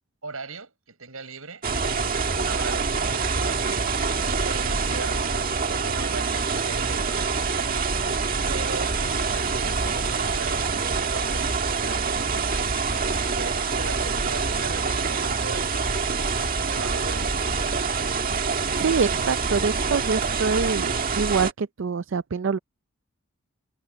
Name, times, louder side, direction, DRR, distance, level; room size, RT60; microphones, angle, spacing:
voice 1, 0.2-3.9 4.2-7.9 8.5-12.8 13.3-16.3 16.6-17.7, right 3 dB, 80° right, 6.4 m, -39 dB
sound 1, 1.6-21.5, right 4 dB, 40° right, 1.8 m, -26 dB
voice 2, 18.8-22.6, right 5 dB, 60° right, 0.5 m, -25 dB
head